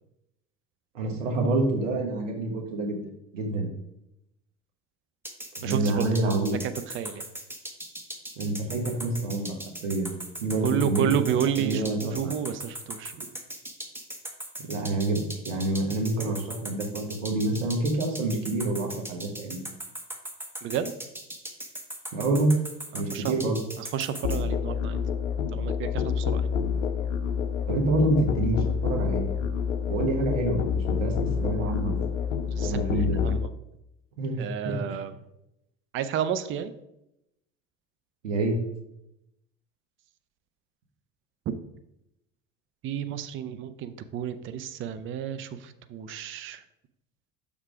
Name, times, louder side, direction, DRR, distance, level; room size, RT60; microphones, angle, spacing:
voice 1, 0.9-3.0 3.3-3.7 5.6-6.6 8.4-9.6 9.8-10.1 10.4-12.3 14.7-19.7 22.1-22.5 22.9-23.6 27.7-29.3 29.9-32.0 32.6-33.2 34.2-35.0 38.2-38.6, right 2 dB, 80° right, 1 dB, 1.4 m, -27 dB
sound 1, 5.2-24.4, right 1 dB, 5° right, 0.9 m, -39 dB
voice 2, 5.6-6.1 6.5-7.2 10.6-13.4 20.6-20.9 22.9-23.4 23.8-25.0 25.5-26.5 32.6-32.8 33.2-33.5 34.4-35.1 35.9-36.7 41.5-41.6 42.8-46.6, right 9 dB, 35° right, 11 dB, 0.5 m, -31 dB
Musical instrument, 24.2-33.5, left 7 dB, 80° left, 0.5 m, -28 dB
6.4 x 3.6 x 4.8 m, 0.85 s
hypercardioid pair, 70°, 37 cm